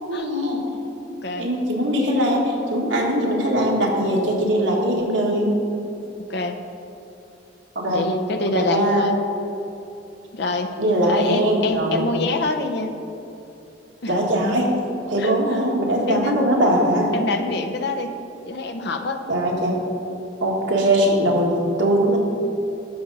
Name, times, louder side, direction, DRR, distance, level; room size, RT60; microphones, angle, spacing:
voice 1, 0.0-0.6 1.4-5.6 7.8-8.1 8.5-9.1 10.8-12.1 14.1-14.7 15.1-17.1 19.3-19.8 20.4-22.2, right 1 dB, 85° right, -1 dB, 1.8 m, -21 dB
voice 2, 6.2-6.6 7.8-9.2 10.3-10.7 11.0-12.9 14.0-14.1 15.2-15.6 16.1-16.3 17.1-18.2 18.5-19.2, left 3 dB, 65° left, 6 dB, 0.7 m, -26 dB
12.5 x 6.5 x 4.1 m, 2.9 s
head